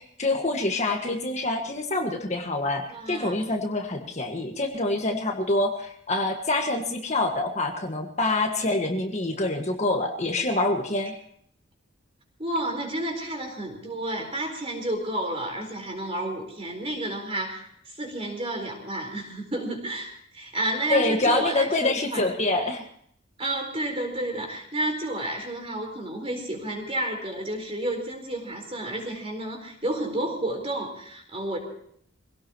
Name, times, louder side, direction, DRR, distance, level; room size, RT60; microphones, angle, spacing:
voice 1, 0.0-11.1 20.9-22.9, left 2 dB, 35° left, 3 dB, 1.7 m, -26 dB
voice 2, 2.9-3.4 12.4-22.3 23.4-31.6, right 1 dB, 30° right, 2 dB, 4.3 m, -31 dB
24.0 x 17.5 x 3.0 m, 0.65 s
head